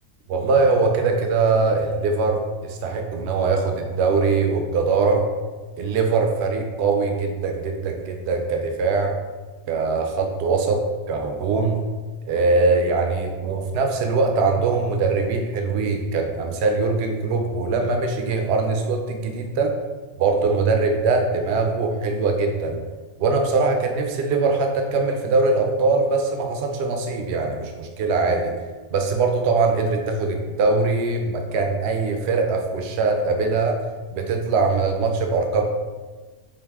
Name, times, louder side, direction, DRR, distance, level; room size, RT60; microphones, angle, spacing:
voice 1, 0.3-5.2 5.8-9.2 9.7-11.8 12.3-19.8 20.2-22.8 23.2-28.5 28.9-33.8 34.1-35.6, right 4 dB, 60° right, 3 dB, 0.8 m, -22 dB
4.8 x 2.6 x 3.5 m, 1.3 s
omnidirectional pair, 1.4 m